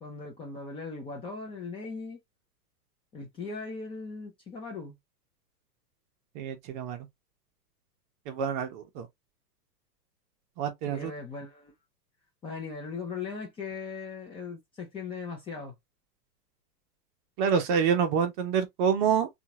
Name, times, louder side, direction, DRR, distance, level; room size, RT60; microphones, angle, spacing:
voice 1, 0.0-2.2 3.1-5.0 10.9-11.7 12.4-15.7, left 4 dB, 10° left, 0.6 m, -39 dB
voice 2, 6.3-7.0 8.3-9.1 10.6-11.1 17.4-19.3, right 7 dB, 30° right, 0.8 m, -27 dB
3.7 x 2.5 x 2.8 m
figure-of-eight pair, 100°, 49 cm